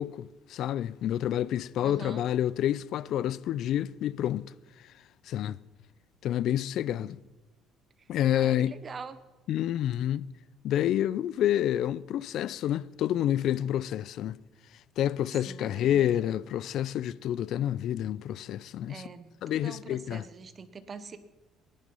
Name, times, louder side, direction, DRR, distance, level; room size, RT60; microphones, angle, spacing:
voice 1, 0.0-4.5 5.3-5.6 6.2-7.2 8.1-8.7 9.5-10.3 10.6-14.4 15.0-19.0 19.4-20.2, left 11 dB, 55° left, 0.4 m, -28 dB
voice 2, 1.8-2.2 7.0-7.1 8.0-8.1 8.3-9.2 15.4-16.2 18.8-21.2, right 5 dB, 25° right, 0.9 m, -44 dB
18.0 x 10.5 x 5.4 m
cardioid pair, 160°, 0 cm